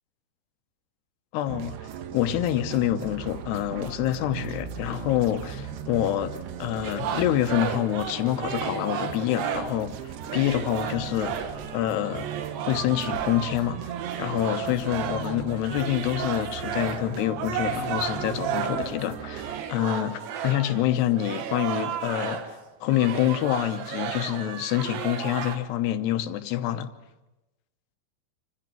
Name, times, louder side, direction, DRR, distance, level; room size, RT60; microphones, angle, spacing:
voice 1, 1.3-12.3 12.7-13.8 14.2-22.6 22.8-26.9, left 12 dB, 75° left, 3.0 m, -27 dB
sound 1, 1.5-19.6, right 9 dB, 75° right, 3.1 m, -38 dB
sound 2, 6.8-9.8 10.2-22.6 22.9-25.6, right 8 dB, 90° right, 4.0 m, -33 dB
28.0 x 15.0 x 9.3 m
omnidirectional pair, 5.0 m